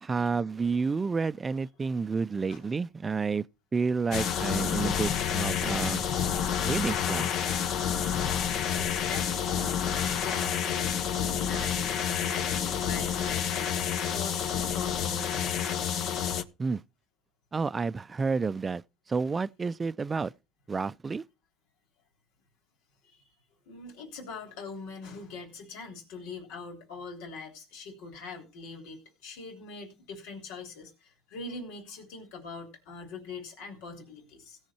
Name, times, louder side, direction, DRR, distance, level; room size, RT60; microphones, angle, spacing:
voice 1, 0.0-3.4 3.7-6.0 6.6-7.3 16.6-16.8 17.5-18.8 19.1-20.3 20.7-21.2, right 4 dB, 25° right, 0.5 m, -30 dB
sound 1, 4.1-16.4, left 8 dB, 65° left, 1.1 m, -29 dB
voice 2, 8.7-13.7 14.0-15.5 23.0-23.3 23.7-34.6, left 4 dB, 85° left, 3.5 m, -42 dB
17.0 x 6.5 x 4.4 m
supercardioid pair, 95°, 0 cm